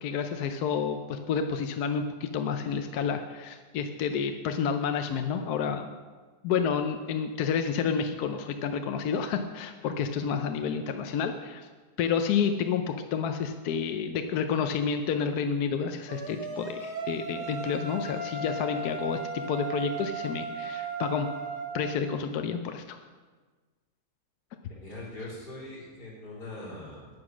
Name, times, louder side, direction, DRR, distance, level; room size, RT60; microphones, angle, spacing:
voice 1, 0.0-5.9 6.4-11.7 12.0-21.3 21.7-23.0, left 6 dB, 70° left, 7 dB, 1.1 m, -30 dB
sound 1, 16.1-21.9, right 3 dB, 70° right, 2.1 m, -36 dB
voice 2, 24.7-27.1, left 2 dB, 90° left, -7 dB, 4.6 m, -42 dB
9.7 x 9.3 x 6.1 m, 1.4 s
omnidirectional pair, 1.8 m